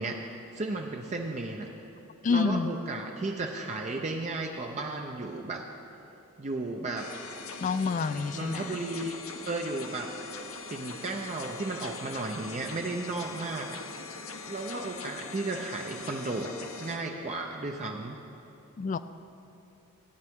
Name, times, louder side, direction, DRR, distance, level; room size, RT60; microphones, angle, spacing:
voice 1, 0.0-1.7 2.3-5.7 6.4-7.1 8.3-9.2 9.5-10.1 10.7-13.8 14.4-18.2, right 2 dB, 30° right, 2 dB, 0.5 m, -34 dB
voice 2, 2.2-2.7 7.6-8.7 18.8-19.0, left 4 dB, 35° left, 13 dB, 0.3 m, -27 dB
sound 1, 7.0-17.0, left 4 dB, 75° left, 1.0 m, -42 dB
15.5 x 9.4 x 3.6 m, 2.8 s
head